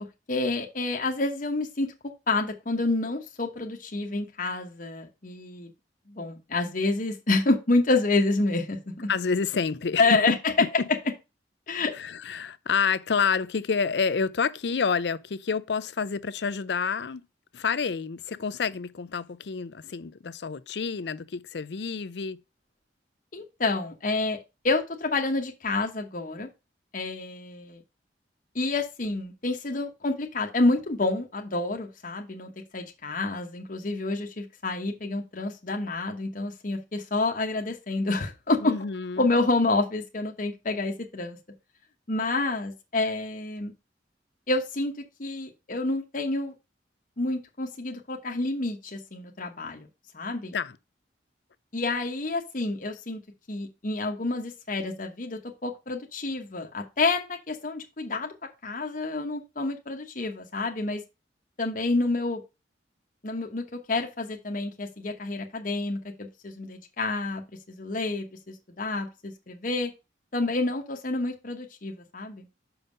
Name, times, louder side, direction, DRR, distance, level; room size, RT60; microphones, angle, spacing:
voice 1, 0.3-1.9 2.3-5.7 6.1-9.1 10.0-10.3 11.7-11.9 23.3-24.4 24.6-26.5 26.9-27.8 28.5-38.7 39.2-41.4 42.1-43.7 44.5-44.9 45.2-46.5 47.2-49.9 50.1-50.5 51.7-53.2 53.5-58.3 58.6-61.0 61.6-62.4 63.2-67.4 67.7-69.9 70.3-72.5, left 2 dB, 45° left, 1.0 m, -28 dB
voice 2, 9.1-10.9 11.9-17.3 17.5-22.4 38.6-39.3 50.5-50.8, left 5 dB, 65° left, 0.5 m, -28 dB
5.7 x 5.5 x 5.2 m
head